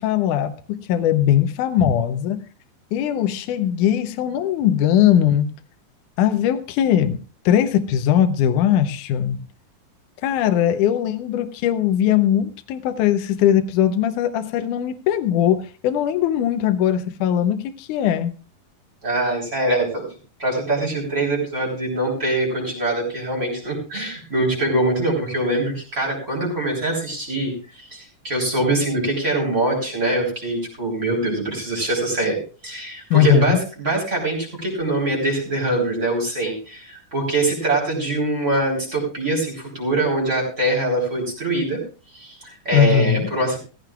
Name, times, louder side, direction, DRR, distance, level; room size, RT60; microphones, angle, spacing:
voice 1, 0.0-2.4 2.9-5.5 6.2-7.2 7.5-9.4 10.2-18.3 33.1-33.6 42.7-43.3, left 10 dB, 75° left, 1.9 m, -20 dB
voice 2, 19.0-20.1 20.4-41.8 42.1-43.6, right 2 dB, 20° right, 4.1 m, -23 dB
16.0 x 15.0 x 2.4 m
omnidirectional pair, 4.5 m